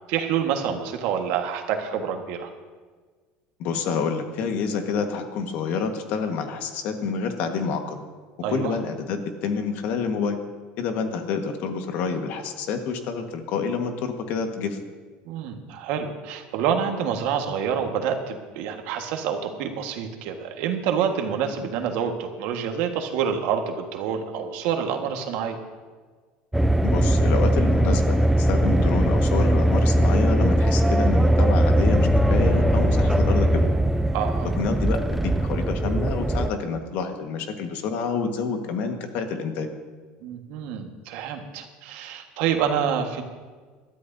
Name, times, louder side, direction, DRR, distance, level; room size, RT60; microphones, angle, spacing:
voice 1, 0.0-2.5 8.4-8.8 15.3-25.6 34.1-34.5 40.2-43.2, right 8 dB, 70° right, 4 dB, 1.6 m, -27 dB
voice 2, 3.6-8.0 8.5-10.4 10.8-14.8 26.8-33.7 34.6-39.7, left 5 dB, 55° left, 5 dB, 1.5 m, -28 dB
sound 1, 26.5-36.5, right 1 dB, 5° right, 0.4 m, -20 dB
20.5 x 13.0 x 2.7 m, 1.5 s
cardioid pair, 145°, 3 cm